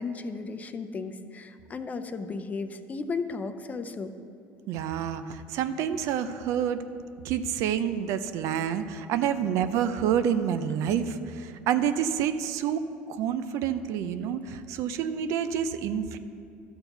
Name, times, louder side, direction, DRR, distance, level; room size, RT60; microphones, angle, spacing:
voice 1, 0.0-4.1, left 4 dB, 30° left, 9 dB, 0.6 m, -35 dB
voice 2, 4.7-6.8 7.2-16.2, right 8 dB, 65° right, 11 dB, 0.5 m, -28 dB
12.0 x 4.5 x 6.8 m, 2.5 s
supercardioid pair, 95°, 5 cm